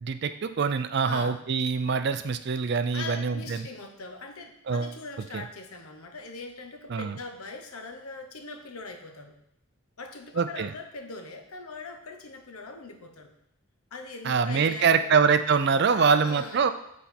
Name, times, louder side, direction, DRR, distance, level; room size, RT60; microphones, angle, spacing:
voice 1, 0.0-3.6 4.7-4.9 5.3-5.4 6.9-7.1 10.4-10.7 14.2-16.7, right 5 dB, 50° right, 10 dB, 0.4 m, -24 dB
voice 2, 1.0-1.4 2.9-9.4 10.0-13.3 13.9-15.1 15.9-16.7, left 3 dB, 85° left, 4 dB, 0.9 m, -41 dB
7.9 x 4.3 x 4.3 m, 0.78 s
head